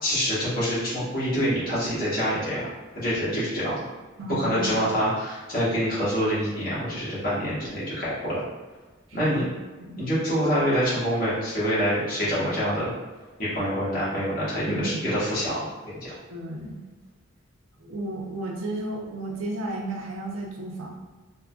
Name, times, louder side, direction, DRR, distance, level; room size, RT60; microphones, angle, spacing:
voice 1, 0.0-2.7 2.9-3.7 4.4-8.4 9.1-9.5 10.0-12.8 13.4-16.2, equal, 40° left, -10 dB, 1.3 m, -26 dB
voice 2, 4.2-4.8 9.2-9.5 9.8-10.1 14.7-15.0 16.3-16.8 17.8-20.9, right 2 dB, 70° right, -1 dB, 0.5 m, -33 dB
3.5 x 2.2 x 2.4 m, 1.3 s
head